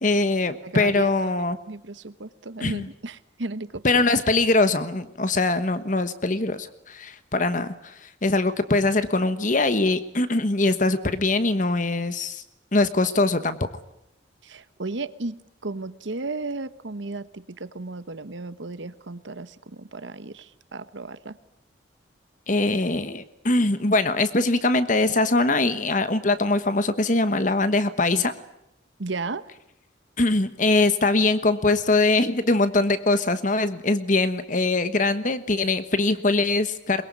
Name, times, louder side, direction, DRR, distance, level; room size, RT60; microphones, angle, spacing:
voice 1, 0.0-1.6 2.6-2.9 3.8-12.4 12.7-13.7 22.5-28.3 30.2-37.0, left 2 dB, 40° left, 12 dB, 1.2 m, -22 dB
voice 2, 0.6-1.4 1.7-3.8 14.4-21.4 29.0-29.5, right 3 dB, 80° right, 14 dB, 1.1 m, -34 dB
22.0 x 22.0 x 9.5 m, 0.82 s
head